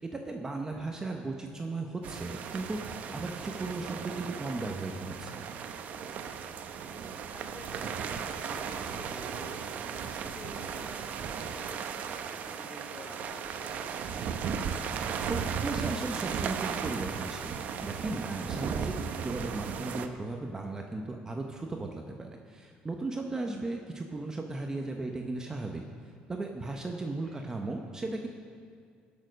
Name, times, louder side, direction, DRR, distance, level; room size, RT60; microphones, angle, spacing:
voice 1, 0.0-5.4 15.3-17.5 17.8-19.0 19.2-25.8 26.3-28.3, right 2 dB, 20° right, 2 dB, 0.9 m, -36 dB
sound 1, 2.0-20.1, right 7 dB, 55° right, 0.8 m, -36 dB
voice 2, 6.8-14.1 27.0-27.4, left 1 dB, 25° left, -1 dB, 3.7 m, -49 dB
19.0 x 6.8 x 5.3 m, 2.3 s
cardioid pair, 100°, 3 cm